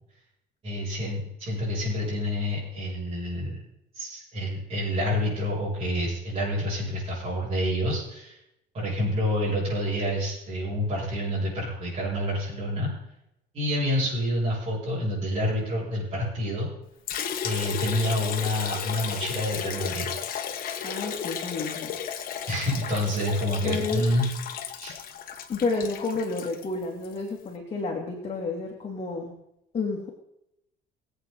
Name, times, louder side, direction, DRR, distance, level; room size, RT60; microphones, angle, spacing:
voice 1, 0.6-3.6 3.9-8.4 8.7-12.9 13.5-16.7 17.4-20.1 22.5-24.3 24.8-24.9, equal, 30° right, -9 dB, 6.9 m, -28 dB
Liquid, 17.1-27.2, left 8 dB, 50° left, 1.6 m, -34 dB
voice 2, 20.8-22.0 23.6-24.0 25.5-29.3 29.7-30.1, left 3 dB, 30° left, -1 dB, 2.8 m, -30 dB
23.5 x 8.3 x 4.0 m, 0.82 s
cardioid pair, 140°, 19 cm